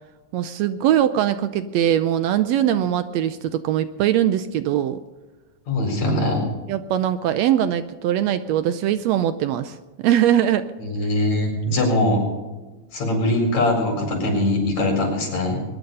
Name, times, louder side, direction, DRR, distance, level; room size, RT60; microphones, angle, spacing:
voice 1, 0.3-5.0 6.7-10.7, right 11 dB, 75° right, 11 dB, 1.7 m, -21 dB
voice 2, 5.7-6.4 10.8-12.2 12.9-15.6, left 1 dB, 70° left, 1 dB, 5.7 m, -21 dB
22.0 x 10.5 x 5.5 m, 1.2 s
omnidirectional pair, 3.3 m